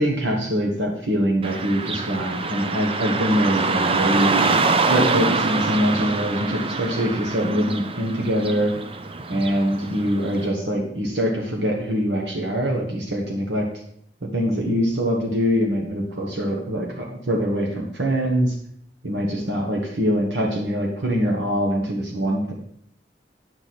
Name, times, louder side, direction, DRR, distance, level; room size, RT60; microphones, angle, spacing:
voice 1, 0.0-4.4 4.9-8.7 9.3-13.7 14.2-18.6 19.0-22.5, equal, 80° right, 0 dB, 1.5 m, -23 dB
Car passing by / Traffic noise roadway noise, 1.4-10.5, right 3 dB, 35° right, 0.6 m, -25 dB
11.0 x 6.5 x 4.3 m, 0.68 s
head